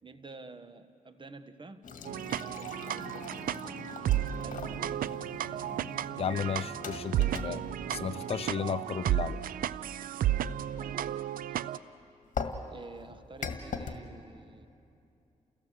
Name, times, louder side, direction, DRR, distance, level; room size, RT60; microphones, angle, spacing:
voice 1, 0.0-1.8 2.4-3.6 4.3-4.9 6.8-7.1 10.1-10.3 10.8-11.6 12.6-14.7, right 3 dB, 35° right, 10 dB, 1.3 m, -50 dB
sound 1, 1.8-9.5 12.3-14.0, left 5 dB, 65° left, 1.7 m, -42 dB
sound 2, 2.0-11.8, right 11 dB, 90° right, 0.5 m, -33 dB
voice 2, 6.2-7.1 7.4-7.6 7.9-9.4, left 7 dB, 45° left, 13 dB, 0.5 m, -33 dB
29.5 x 16.0 x 7.6 m, 2.6 s
cardioid pair, 70°, 14 cm